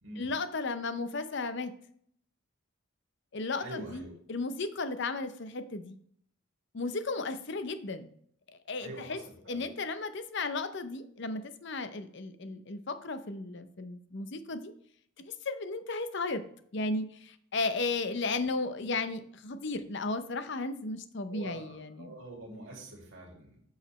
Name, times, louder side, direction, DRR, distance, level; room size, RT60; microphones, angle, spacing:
voice 1, 0.2-1.7 3.3-6.0 6.7-8.1 8.7-9.2 9.5-14.7 15.2-16.4 16.7-22.1, left 3 dB, 55° left, 11 dB, 0.7 m, -34 dB
voice 2, 3.6-4.1 8.8-9.6 21.3-23.6, right 2 dB, 60° right, -1 dB, 2.4 m, -45 dB
8.1 x 6.4 x 3.2 m, 0.64 s
head